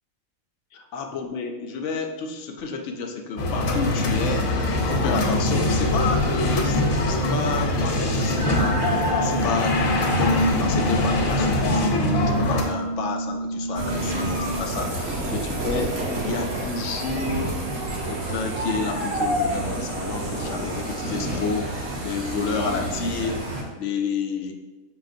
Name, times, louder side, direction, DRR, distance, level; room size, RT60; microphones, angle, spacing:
voice 1, 0.7-4.5 4.8-9.8 10.2-16.0 16.2-17.6 18.0-23.5 23.8-24.5, left 4 dB, 70° left, 4 dB, 0.9 m, -30 dB
sound 1, 3.4-12.6, left 1 dB, 90° left, 1.2 m, -23 dB
sound 2, 8.4-14.7, right 1 dB, 55° right, 0.6 m, -29 dB
sound 3, 13.7-23.6, right 1 dB, 75° right, 1.4 m, -29 dB
5.6 x 3.6 x 2.5 m, 1.2 s
omnidirectional pair, 1.4 m